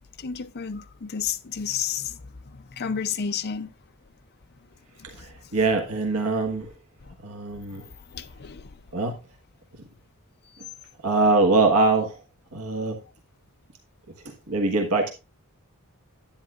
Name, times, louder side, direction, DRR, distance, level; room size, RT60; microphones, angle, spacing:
voice 1, 0.2-2.2 2.8-3.7 8.1-8.6, left 7 dB, 45° left, 0.6 m, -30 dB
voice 2, 5.0-6.7 7.2-7.8 8.9-9.2 11.0-12.1 12.5-13.0 14.2-15.1, right 3 dB, 75° right, 1.4 m, -23 dB
10.5 x 9.1 x 2.4 m
head